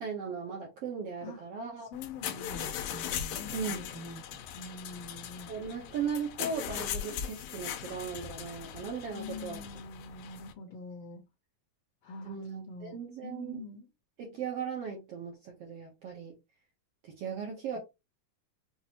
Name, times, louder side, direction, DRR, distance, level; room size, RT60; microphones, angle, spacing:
voice 1, 0.0-1.9 3.5-3.8 5.5-9.6 12.2-13.6 14.2-16.4 17.0-17.8, right 6 dB, 70° right, 1.5 m, -37 dB
sound 1, 1.9-10.5, left 10 dB, 80° left, 2.2 m, -39 dB
voice 2, 1.9-5.5 9.1-11.2 12.0-12.4 12.7-13.0 13.2-13.9, left 2 dB, 65° left, 1.6 m, -44 dB
6.0 x 2.5 x 2.8 m
omnidirectional pair, 3.7 m